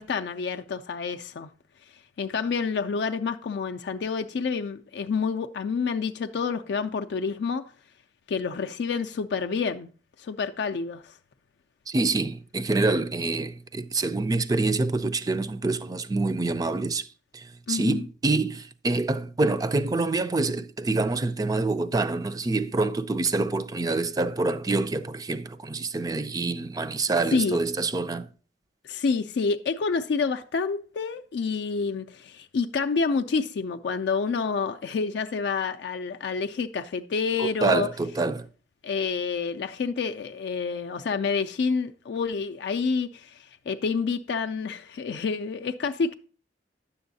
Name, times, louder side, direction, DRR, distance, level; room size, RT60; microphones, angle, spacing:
voice 1, 0.0-1.5 2.2-7.6 8.3-9.9 10.2-11.1 17.7-18.0 27.3-27.6 28.8-37.9 38.8-46.1, left 5 dB, 65° left, 0.4 m, -28 dB
voice 2, 11.9-17.1 17.3-28.3 37.4-38.5, right 3 dB, 20° right, 0.4 m, -26 dB
10.0 x 7.0 x 2.7 m
head